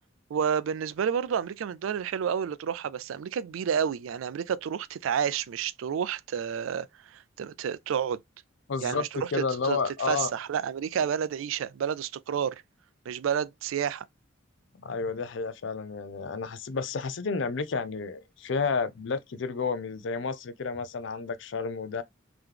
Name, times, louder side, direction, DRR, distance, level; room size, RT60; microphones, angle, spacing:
voice 1, 0.3-8.2 8.8-9.8 10.1-12.6 13.1-14.0, right 8 dB, 80° right, 0.3 m, -30 dB
voice 2, 8.7-10.3 14.8-22.0, left 4 dB, 65° left, 0.5 m, -31 dB
3.7 x 2.9 x 3.3 m
head